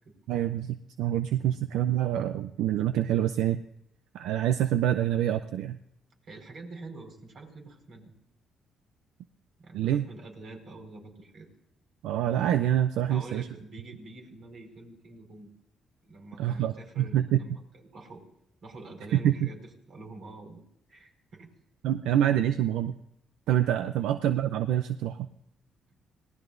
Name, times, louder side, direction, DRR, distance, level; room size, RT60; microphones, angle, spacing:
voice 1, 0.3-3.6 4.1-5.8 9.7-10.1 12.0-13.4 16.4-17.4 19.1-19.5 21.8-22.9 23.5-25.3, right 11 dB, 90° right, 10 dB, 0.5 m, -26 dB
voice 2, 6.2-8.1 9.6-11.5 13.1-15.5 16.0-18.2 18.6-20.6 20.9-21.5 24.0-24.1, right 2 dB, 60° right, 2 dB, 5.0 m, -46 dB
26.0 x 18.5 x 2.6 m, 0.81 s
cardioid pair, 90°, 0 cm